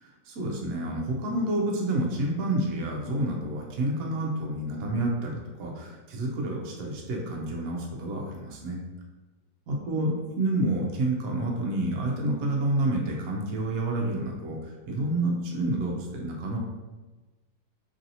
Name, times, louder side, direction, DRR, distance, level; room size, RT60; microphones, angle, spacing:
voice 1, 0.0-8.8 9.7-16.6, right 1 dB, 70° right, -1 dB, 0.9 m, -29 dB
3.1 x 2.7 x 2.6 m, 1.2 s
omnidirectional pair, 2.0 m